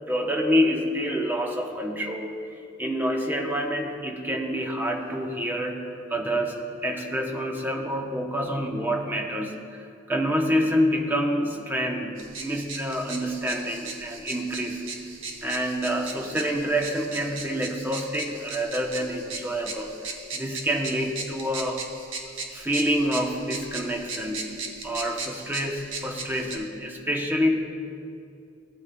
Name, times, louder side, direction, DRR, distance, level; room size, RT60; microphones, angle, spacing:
voice 1, 0.1-2.4 2.8-6.6 6.8-14.8 15.4-21.8 22.5-27.7, equal, 10° right, 2 dB, 0.7 m, -27 dB
sound 1, 12.2-26.6, right 4 dB, 85° right, 1.0 m, -38 dB
16.0 x 8.7 x 2.2 m, 2.5 s
head